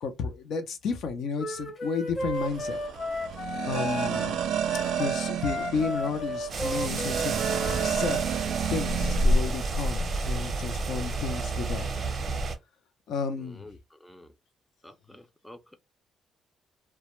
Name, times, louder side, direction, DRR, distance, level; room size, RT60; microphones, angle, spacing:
voice 1, 0.0-2.8 3.6-4.5 5.0-8.2 8.7-11.9 13.1-13.7, left 5 dB, 75° left, 0.5 m, -32 dB
Wind instrument woodwind instrument, 1.4-7.9, left 1 dB, 40° left, 0.8 m, -34 dB
sound 1, 2.3-9.3, right 9 dB, 85° right, 0.4 m, -31 dB
sound 2, 6.5-12.5, right 1 dB, 45° right, 0.7 m, -29 dB
voice 2, 13.3-14.4 14.8-15.8, left 1 dB, 5° left, 0.4 m, -50 dB
2.1 x 2.0 x 2.9 m
cardioid pair, 90°, 0 cm